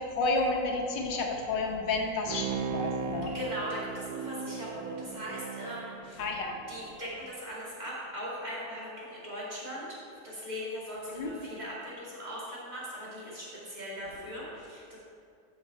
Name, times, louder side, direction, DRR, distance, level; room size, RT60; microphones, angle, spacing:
voice 1, 0.2-3.3 6.2-6.6 11.2-11.3, left 3 dB, 90° left, 1 dB, 1.7 m, -30 dB
Bowed string instrument, 2.3-6.9 7.3-7.4, right 5 dB, 75° right, 1.1 m, -37 dB
voice 2, 3.3-6.2 6.7-15.0, equal, 25° right, -8 dB, 2.5 m, -39 dB
12.5 x 5.2 x 4.5 m, 2.3 s
omnidirectional pair, 1.9 m